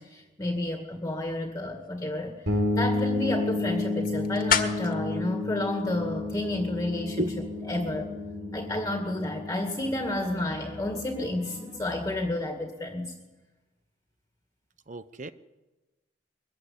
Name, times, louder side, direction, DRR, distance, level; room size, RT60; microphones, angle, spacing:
voice 1, 0.0-2.4 2.8-7.2 7.7-8.1 8.5-13.1, left 1 dB, 15° left, 3 dB, 2.1 m, -31 dB
sound 1, 1.5-6.7, left 7 dB, 50° left, 1.8 m, -35 dB
sound 2, 2.5-12.1, left 2 dB, 80° right, 4.6 m, -32 dB
sound 3, 2.6-12.3, equal, 15° right, 4.5 m, -45 dB
voice 2, 7.2-7.9 8.3-8.6 14.9-15.3, right 1 dB, 45° right, 13 dB, 0.7 m, -35 dB
22.5 x 15.5 x 9.8 m, 1.1 s
head